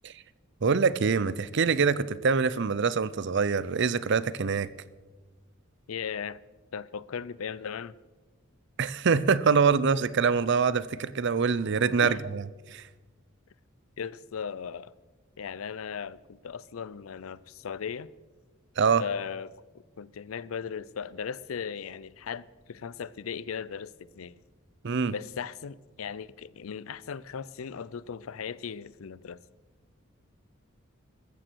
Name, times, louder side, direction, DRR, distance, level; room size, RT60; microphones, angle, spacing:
voice 1, 0.6-4.7 8.8-12.4 12.7-12.8 18.8-19.0 24.8-25.1, right 5 dB, 60° right, 0.6 m, -24 dB
voice 2, 5.9-6.4 6.7-7.9 12.0-12.2 14.0-14.9 15.4-18.1 19.0-19.5 20.0-24.4 25.1-29.4, left 6 dB, 85° left, 0.5 m, -37 dB
15.0 x 14.0 x 4.6 m
head